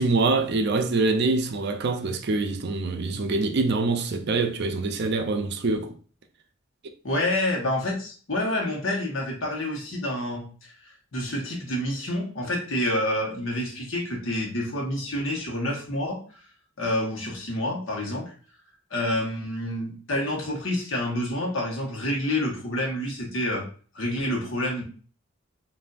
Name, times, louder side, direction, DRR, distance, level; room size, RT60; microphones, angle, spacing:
voice 1, 0.0-5.9, right 3 dB, 55° right, 0.5 m, -25 dB
voice 2, 7.0-10.5 10.8-16.2 16.8-18.3 18.9-23.7 23.9-24.8, left 1 dB, 70° left, 1.2 m, -28 dB
5.3 x 2.7 x 2.5 m
head